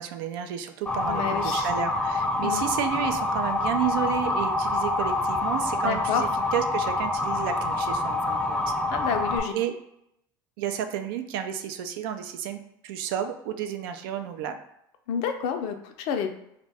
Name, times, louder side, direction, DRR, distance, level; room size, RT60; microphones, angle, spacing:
voice 1, 0.0-8.6 9.5-9.7 10.6-14.6, right 9 dB, 75° right, 7 dB, 0.4 m, -31 dB
Motor vehicle (road) / Siren, 0.9-9.4, left 2 dB, 5° left, 0.6 m, -26 dB
voice 2, 1.1-1.7 2.4-2.6 5.8-6.2 8.9-9.5 15.1-16.3, left 7 dB, 65° left, 6 dB, 0.4 m, -29 dB
2.5 x 2.1 x 3.3 m, 0.80 s
hypercardioid pair, 85°, 12 cm